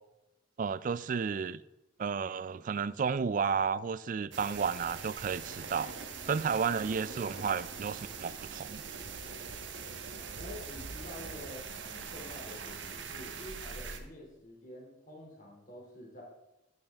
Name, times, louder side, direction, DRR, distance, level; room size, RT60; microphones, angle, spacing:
voice 1, 0.6-1.6 2.0-5.9 6.3-8.8, right 6 dB, 45° right, 0.3 m, -32 dB
sound 1, 4.3-14.0, right 5 dB, 80° right, 1.1 m, -42 dB
voice 2, 10.4-16.2, left 1 dB, 45° left, 2.6 m, -48 dB
12.5 x 7.7 x 3.4 m
head